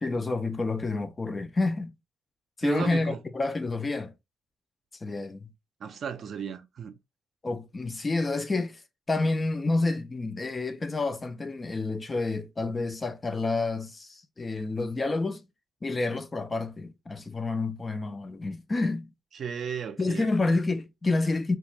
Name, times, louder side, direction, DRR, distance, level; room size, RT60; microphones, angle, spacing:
voice 1, 0.0-1.9 2.6-4.1 5.0-5.5 7.4-8.8 9.1-15.5 15.8-19.1 20.0-21.6, left 3 dB, 25° left, 0.4 m, -29 dB
voice 2, 2.6-3.2 5.8-6.9 19.3-20.6, right 7 dB, 55° right, 0.5 m, -35 dB
2.4 x 2.3 x 2.9 m
cardioid pair, 90°, 0 cm